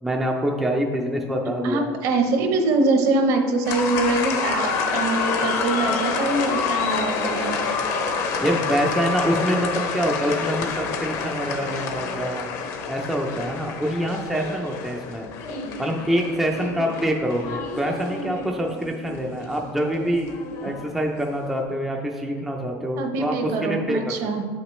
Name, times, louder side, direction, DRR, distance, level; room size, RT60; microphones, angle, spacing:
voice 1, 0.0-1.9 8.4-12.5 12.9-15.3 15.8-20.3 20.6-24.1, equal, 5° right, 0 dB, 0.4 m, -25 dB
voice 2, 1.5-7.6 23.0-24.5, right 3 dB, 50° right, 5 dB, 0.8 m, -23 dB
sound 1, 3.6-21.3, left 5 dB, 50° left, 0.7 m, -28 dB
7.8 x 5.9 x 3.1 m, 1.5 s
cardioid pair, 170°, 7 cm